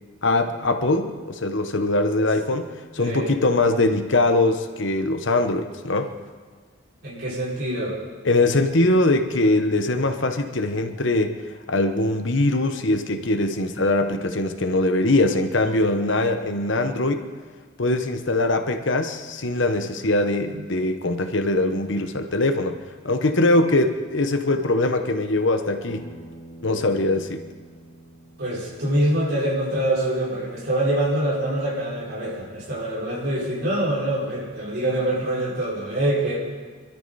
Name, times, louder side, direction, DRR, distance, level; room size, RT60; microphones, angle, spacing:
voice 1, 0.2-2.7 2.9-6.1 8.2-11.4 11.7-17.2 17.8-22.8 23.0-26.1 26.6-27.4, left 2 dB, 60° left, 7 dB, 1.0 m, -22 dB
voice 2, 3.0-3.3 7.0-8.0 28.4-36.4, right 1 dB, 50° right, -6 dB, 5.6 m, -25 dB
Bass guitar, 25.9-30.1, right 1 dB, 30° left, 5.2 m, -46 dB
25.5 x 13.0 x 4.2 m, 1.5 s
head